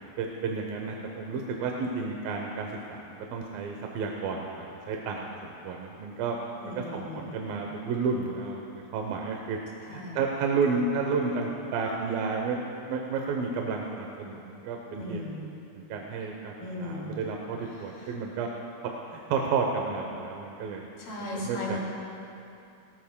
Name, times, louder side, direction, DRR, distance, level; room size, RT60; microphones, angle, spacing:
voice 1, 0.2-6.4 6.6-9.6 9.9-15.2 15.8-16.5 16.8-18.5 19.1-20.8 21.3-21.8, right 4 dB, 75° right, 1 dB, 2.4 m, -31 dB
voice 2, 6.6-7.3 9.8-10.2 15.0-15.5 16.6-17.2 17.9-18.1 21.0-21.8, left 1 dB, 70° left, -4 dB, 4.4 m, -36 dB
19.0 x 18.5 x 2.2 m, 2.7 s
omnidirectional pair, 4.6 m